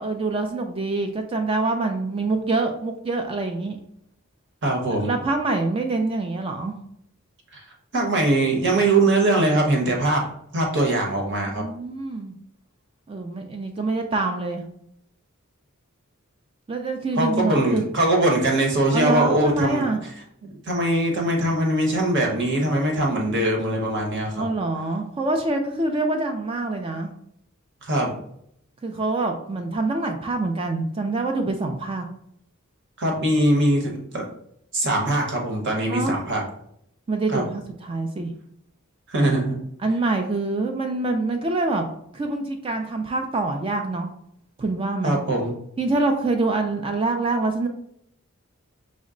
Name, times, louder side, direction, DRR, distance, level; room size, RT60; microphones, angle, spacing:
voice 1, 0.0-3.8 5.0-6.8 11.5-12.3 13.1-14.7 16.7-17.8 18.9-20.0 24.4-27.1 28.8-32.0 35.9-36.1 37.1-38.3 39.8-44.1 44.6-45.2 45.8-47.7, right 2 dB, 25° right, 4 dB, 0.3 m, -25 dB
voice 2, 4.6-5.1 7.5-7.6 7.9-10.3 10.5-11.6 17.2-19.8 20.7-24.4 27.8-28.2 33.0-34.2 34.7-36.4 37.3-37.4 39.1-39.6 45.0-45.5, right 1 dB, 55° right, 1 dB, 1.0 m, -21 dB
5.1 x 2.1 x 3.7 m, 0.71 s
head